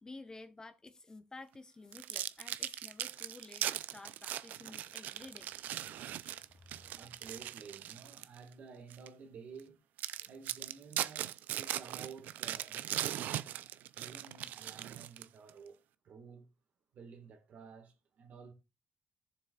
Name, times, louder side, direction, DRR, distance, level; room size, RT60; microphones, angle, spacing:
voice 1, 0.0-5.5 5.8-7.0 10.1-10.3, left 3 dB, 25° left, 0.9 m, -53 dB
sound 1, 1.9-8.4 8.9-9.1 9.6-9.7 10.0-15.5, right 12 dB, 80° right, 0.4 m, -39 dB
voice 2, 6.8-9.8 10.3-13.0 13.2-16.5 16.9-18.5, right 5 dB, 60° right, 1.7 m, -52 dB
14.5 x 7.1 x 2.4 m
cardioid pair, 90°, 3 cm